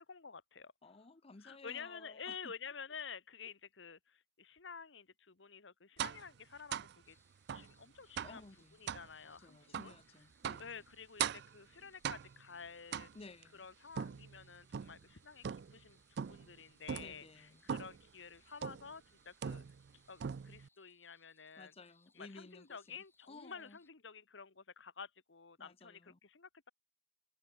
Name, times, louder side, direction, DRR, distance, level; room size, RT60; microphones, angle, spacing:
voice 1, 0.1-0.7 1.4-7.2 7.5-8.4 8.8-9.9 10.6-13.1 13.5-19.6 20.1-21.7 22.1-26.7, left 6 dB, 70° left, 1.3 m, -51 dB
voice 2, 0.8-2.5 8.2-8.8 9.2-10.8 13.1-13.7 16.9-17.6 21.6-23.0 23.3-23.8 25.6-26.2, left 3 dB, 30° left, 0.7 m, -56 dB
sound 1, 6.0-6.3 6.7-7.0 7.5-7.7 8.2-8.4 8.9-9.1 9.7-10.0 10.4-10.7 11.2-11.6 12.0-12.5 12.9-13.4 14.0-15.0 15.4-15.8 16.2-16.5 16.9-17.2 17.7-18.0 18.6-18.9 19.4-19.9 20.2-20.7, right 8 dB, 60° right, 0.4 m, -40 dB
sound 2, 7.0-23.9, left 3 dB, 15° left, 5.5 m, -75 dB
open air
head